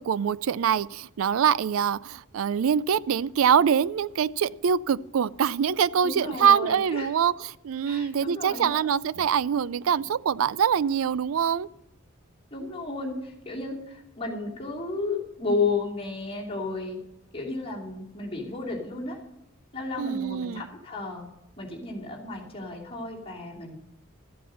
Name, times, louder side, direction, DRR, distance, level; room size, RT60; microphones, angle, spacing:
voice 1, 0.0-11.7 20.0-20.7, right 7 dB, 80° right, 20 dB, 0.4 m, -24 dB
voice 2, 6.0-7.1 7.9-8.8 12.5-17.0 17.3-19.2 19.7-21.2 21.6-23.8, left 3 dB, 25° left, -3 dB, 2.8 m, -32 dB
14.0 x 7.7 x 6.4 m, 0.90 s
head